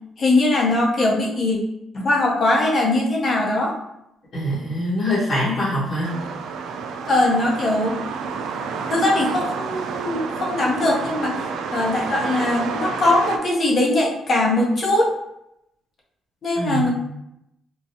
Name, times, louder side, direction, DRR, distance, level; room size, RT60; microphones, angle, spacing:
voice 1, 0.2-1.6 1.9-3.7 7.0-8.0 8.9-11.3 11.7-15.1 16.4-16.9, left 2 dB, 50° left, -2 dB, 0.9 m, -20 dB
voice 2, 4.3-6.1 16.5-16.9, equal, 65° left, -12 dB, 1.4 m, -23 dB
sound 1, 6.0-13.4, right 5 dB, 80° right, 0.3 m, -29 dB
3.9 x 2.3 x 2.7 m, 0.82 s
cardioid pair, 90°, 0 cm